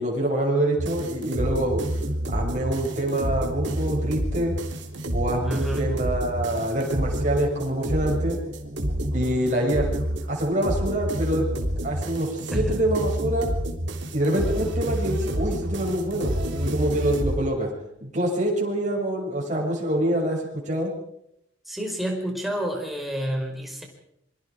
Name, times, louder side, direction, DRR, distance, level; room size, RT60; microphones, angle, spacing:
voice 1, 0.0-1.8 2.3-4.5 5.1-8.4 9.1-9.9 10.3-13.5 14.1-17.7 18.0-20.9, right 1 dB, 40° right, -2 dB, 7.0 m, -26 dB
sound 1, 0.8-17.4, equal, 65° right, 3.4 m, -28 dB
voice 2, 5.4-5.9 12.5-12.8 21.6-23.8, equal, ahead, 1 dB, 5.0 m, -29 dB
27.0 x 24.0 x 5.0 m, 0.79 s
head